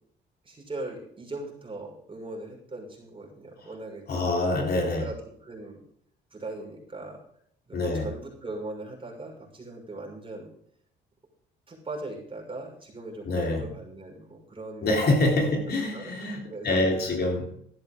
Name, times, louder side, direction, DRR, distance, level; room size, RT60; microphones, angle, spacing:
voice 1, 0.4-4.3 5.0-5.8 6.3-7.2 7.7-10.5 11.7-15.0 15.4-15.5 15.9-17.2, right 2 dB, 25° right, 5.9 m, -40 dB
voice 2, 4.1-5.1 7.7-8.1 13.3-13.7 14.8-17.6, left 2 dB, 55° left, 3.5 m, -25 dB
13.0 x 10.5 x 3.8 m
cardioid pair, 90°, 20 cm